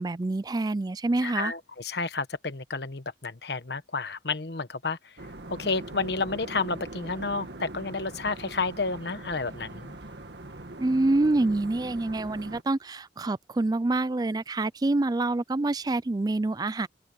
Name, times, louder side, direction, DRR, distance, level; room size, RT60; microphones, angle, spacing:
voice 1, 0.0-1.5 10.8-16.9, right 2 dB, 20° right, 0.4 m, -26 dB
voice 2, 1.2-5.1 5.5-10.0, left 4 dB, 65° left, 1.3 m, -31 dB
sound 1, 5.2-12.6, right 2 dB, 70° right, 1.9 m, -42 dB
open air
head